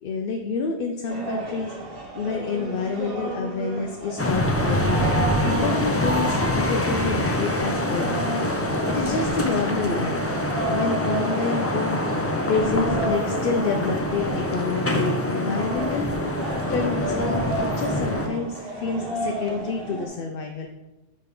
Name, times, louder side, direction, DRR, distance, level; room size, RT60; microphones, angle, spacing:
voice 1, 0.0-5.0 5.4-8.3 8.8-10.3 10.7-12.1 12.5-16.2 16.7-20.7, left 4 dB, 60° left, 3 dB, 0.7 m, -28 dB
sound 1, 1.1-20.1, right 2 dB, 55° right, 1.4 m, -33 dB
sound 2, 4.2-18.3, left 1 dB, 25° left, 0.3 m, -25 dB
6.7 x 3.2 x 5.2 m, 1.0 s
omnidirectional pair, 1.2 m